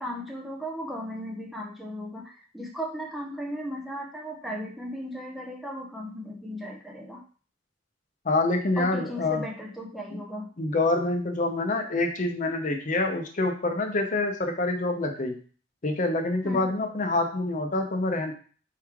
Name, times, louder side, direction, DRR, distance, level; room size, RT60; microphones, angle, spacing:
voice 1, 0.0-7.2 8.8-10.5 16.4-16.7, equal, ahead, 0 dB, 0.5 m, -36 dB
voice 2, 8.3-9.4 10.1-10.2 10.6-15.3 15.8-18.3, left 2 dB, 40° left, 5 dB, 0.6 m, -26 dB
4.6 x 3.1 x 3.5 m, 0.41 s
head